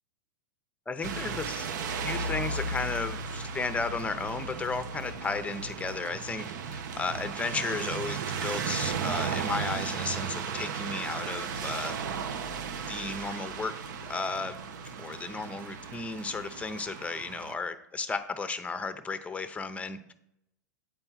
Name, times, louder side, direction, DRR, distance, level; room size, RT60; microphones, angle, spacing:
voice 1, 0.9-1.7 2.0-12.0 12.7-13.7 14.1-14.6 15.0-20.1, left 4 dB, 10° left, 10 dB, 0.7 m, -34 dB
sound 1, 1.0-17.5, right 5 dB, 70° right, 0.7 m, -35 dB
8.7 x 4.4 x 5.8 m, 0.79 s
hypercardioid pair, 110°, 10 cm